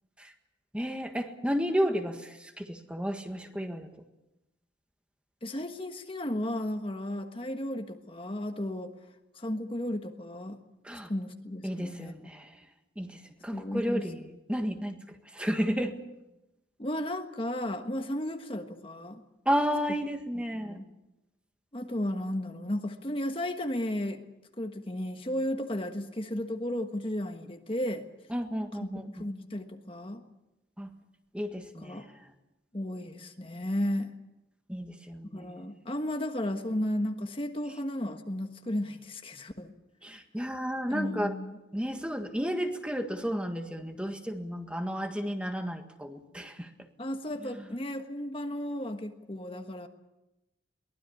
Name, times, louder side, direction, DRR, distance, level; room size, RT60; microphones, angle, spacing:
voice 1, 0.7-3.9 10.8-11.1 11.6-12.5 13.0-14.2 14.5-15.0 15.3-16.0 19.4-20.8 28.3-29.0 30.8-30.9 31.3-32.0 34.7-35.6 40.0-41.3 41.7-46.7 47.4-47.6, equal, 5° right, 5 dB, 1.6 m, -32 dB
voice 2, 5.4-8.9 9.4-10.6 11.1-12.3 13.5-14.1 16.8-19.2 20.5-20.8 21.7-24.2 24.6-28.0 28.8-30.2 31.8-32.1 32.7-34.1 35.3-39.7 40.9-41.6 47.0-49.9, left 1 dB, 30° left, 5 dB, 1.4 m, -34 dB
23.0 x 19.0 x 8.4 m, 0.95 s
head